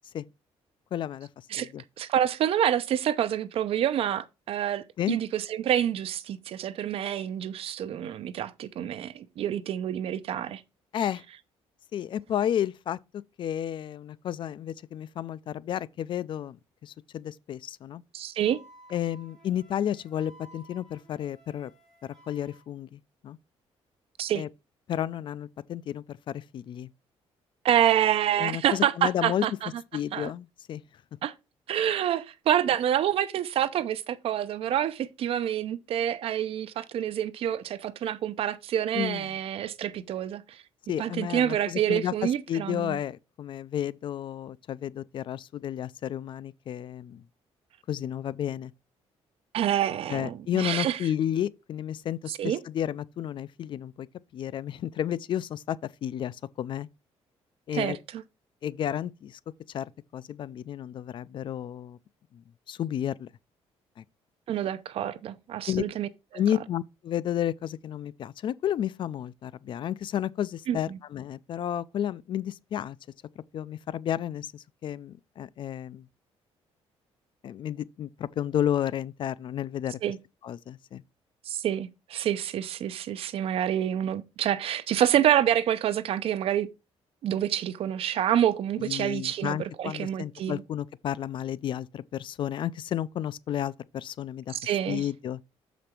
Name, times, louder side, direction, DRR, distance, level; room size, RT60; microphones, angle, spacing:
voice 1, 0.9-1.3 1.6-1.8 5.0-5.2 10.9-11.2 11.9-16.6 16.8-18.0 18.9-21.7 22.3-23.4 24.3-24.5 24.9-26.9 28.4-29.5 29.9-30.8 38.9-39.3 40.9-47.2 47.9-48.7 50.1-54.1 54.3-55.8 56.0-56.9 57.7-58.0 58.6-59.4 59.7-62.0 62.7-63.3 64.0-64.1 65.7-65.8 66.3-73.0 73.5-76.1 77.4-80.0 80.4-81.0 88.8-94.6 94.9-95.4, left 10 dB, 50° left, 0.4 m, -32 dB
voice 2, 2.0-10.6 18.1-18.6 24.2-24.4 27.6-29.7 30.1-30.3 31.2-31.3 31.7-40.6 41.0-43.0 49.5-51.0 52.3-52.6 57.7-58.2 64.5-66.1 70.7-71.0 80.0-80.2 81.5-86.7 87.2-90.6 94.5-95.0, right 10 dB, 60° right, 0.6 m, -27 dB
Wind instrument woodwind instrument, 18.4-22.6, equal, 5° left, 4.0 m, -55 dB
6.9 x 5.1 x 4.4 m
cardioid pair, 145°, 11 cm